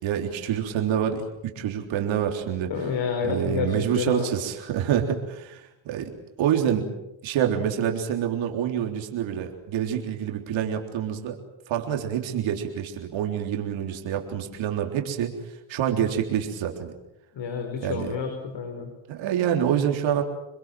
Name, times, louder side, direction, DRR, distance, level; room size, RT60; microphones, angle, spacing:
voice 1, 0.0-2.7 3.2-6.1 6.4-6.9 7.2-11.4 11.7-15.4 15.7-16.9 17.8-18.2 19.1-20.2, right 9 dB, 90° right, 3 dB, 3.7 m, -27 dB
voice 2, 2.7-4.3 17.3-18.9, left 6 dB, 70° left, 5 dB, 5.2 m, -29 dB
28.5 x 22.0 x 7.6 m, 0.88 s
cardioid pair, 85°, 45 cm